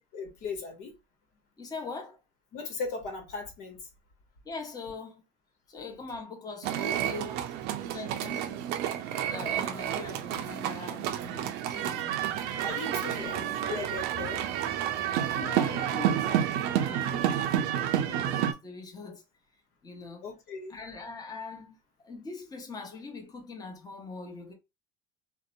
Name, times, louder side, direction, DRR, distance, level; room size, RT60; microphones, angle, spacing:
voice 1, 0.1-0.9 2.5-3.8 5.9-6.0 12.6-14.5 20.2-20.8, left 4 dB, 70° left, 1.0 m, -38 dB
voice 2, 1.6-2.2 4.4-5.2 5.7-7.4 7.8-8.6 9.3-12.1 13.0-13.4 15.0-19.2 19.8-20.2 20.7-21.8 22.0-24.5, left 4 dB, 20° left, 0.9 m, -42 dB
sound 1, 6.6-18.5, right 10 dB, 70° right, 0.5 m, -30 dB
2.7 x 2.1 x 2.5 m
supercardioid pair, 100°, 18 cm